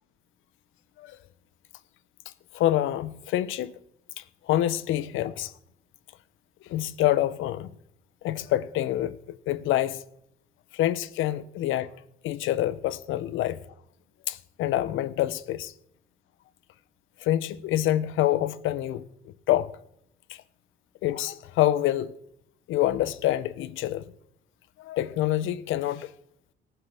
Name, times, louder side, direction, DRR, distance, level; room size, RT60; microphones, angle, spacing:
voice 1, 2.5-3.7 4.2-5.5 6.6-7.7 8.2-10.0 10.7-11.9 12.2-13.6 14.3-15.7 17.2-19.7 20.3-20.4 21.0-22.1 22.7-24.0 24.8-26.1, left 13 dB, 90° left, 0.7 m, -27 dB
18.5 x 7.7 x 3.4 m
cardioid pair, 90°, 20 cm